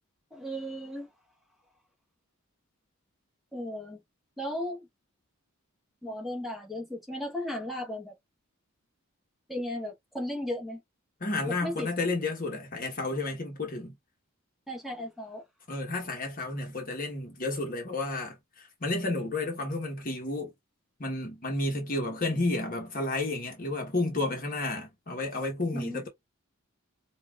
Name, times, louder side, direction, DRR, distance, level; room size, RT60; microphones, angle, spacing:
voice 1, 0.3-1.1 3.5-4.0 4.4-4.9 6.0-8.1 9.5-10.8 11.5-11.9 14.7-15.4 25.7-26.1, left 1 dB, ahead, 1.1 m, -35 dB
voice 2, 11.2-13.9 15.7-20.5 21.0-26.1, left 2 dB, 40° left, 1.0 m, -31 dB
5.5 x 2.3 x 2.3 m
head